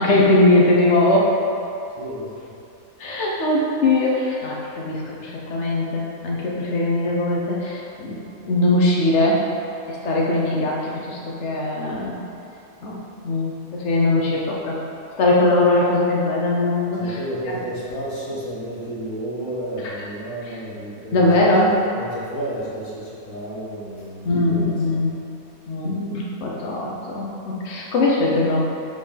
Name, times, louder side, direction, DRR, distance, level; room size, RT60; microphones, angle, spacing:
voice 1, 0.0-1.3 3.0-9.4 9.9-12.2 12.8-14.8 15.2-17.2 21.1-21.8 24.2-25.1 25.7-28.6, left 2 dB, 55° left, -3 dB, 1.2 m, -20 dB
voice 2, 2.0-2.5 17.0-25.2, right 1 dB, 70° left, -6 dB, 1.7 m, -32 dB
5.4 x 3.9 x 5.1 m, 2.7 s
omnidirectional pair, 1.5 m